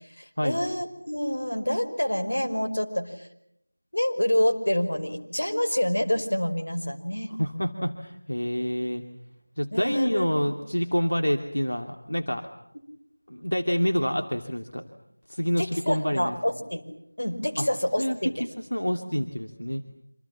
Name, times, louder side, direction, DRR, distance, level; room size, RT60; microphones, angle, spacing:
voice 1, 0.2-3.3 3.9-7.3 9.7-10.3 15.6-16.8 17.2-18.4, left 1 dB, 70° left, 6 dB, 5.5 m, -27 dB
voice 2, 7.4-9.0 9.6-12.5 13.3-14.9 15.3-16.4 17.6-17.7 18.0-19.8, equal, 85° left, 4 dB, 2.7 m, -27 dB
28.0 x 27.0 x 7.4 m, 0.76 s
figure-of-eight pair, 175°, 0 cm